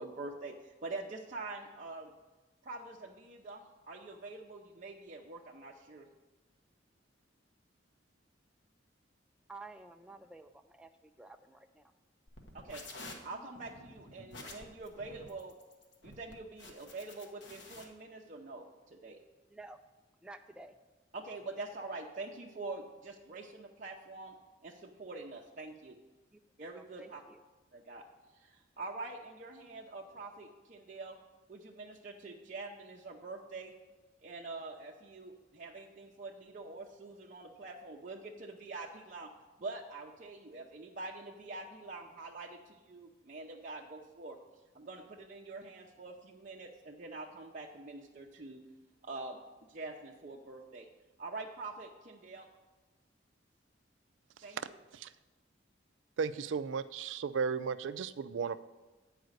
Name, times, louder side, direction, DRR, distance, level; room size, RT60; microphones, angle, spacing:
voice 1, 0.0-2.1 2.6-6.1 12.5-12.8 13.2-15.5 16.0-19.2 21.1-24.4 24.6-26.0 26.6-27.2 27.7-28.0 28.3-31.2 31.5-33.7 34.2-39.3 39.6-44.4 44.7-48.6 49.0-49.4 49.7-50.9 51.2-52.5 54.4-54.6, right 3 dB, 45° right, -2 dB, 0.6 m, -45 dB
voice 2, 9.5-11.9 19.5-19.8 20.2-20.8 26.3-26.4 26.7-27.4, right 2 dB, 5° right, 6 dB, 0.3 m, -52 dB
sound 1, 12.3-17.8, left 2 dB, 70° left, 1.3 m, -50 dB
voice 3, 56.2-58.6, right 5 dB, 85° right, 14 dB, 0.4 m, -35 dB
9.3 x 4.8 x 6.4 m, 1.2 s
head